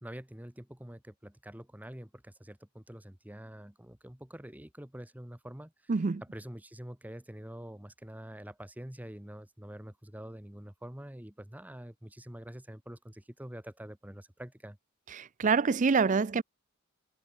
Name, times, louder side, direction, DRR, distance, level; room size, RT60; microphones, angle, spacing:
voice 1, 0.0-5.9 6.2-14.8, right 1 dB, 10° right, 1.0 m, -46 dB
voice 2, 5.9-6.2 15.2-16.4, right 5 dB, 35° right, 0.5 m, -26 dB
head